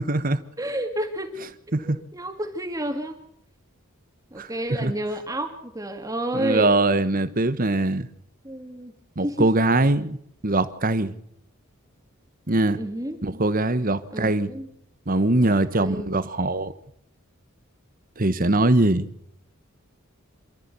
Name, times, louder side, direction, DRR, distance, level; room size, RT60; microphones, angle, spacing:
voice 1, 0.0-0.4 1.7-2.0 4.4-4.9 6.3-8.1 9.2-10.2 10.4-11.1 12.5-12.8 13.2-14.5 15.1-16.7 18.2-19.1, right 2 dB, 40° right, 1.2 m, -22 dB
voice 2, 0.6-1.3 1.8-3.2 4.3-6.8 8.4-8.9 9.2-9.5 12.8-13.2 14.1-14.7 15.4-16.1, right 1 dB, 15° right, 2.3 m, -30 dB
27.5 x 13.5 x 7.0 m
head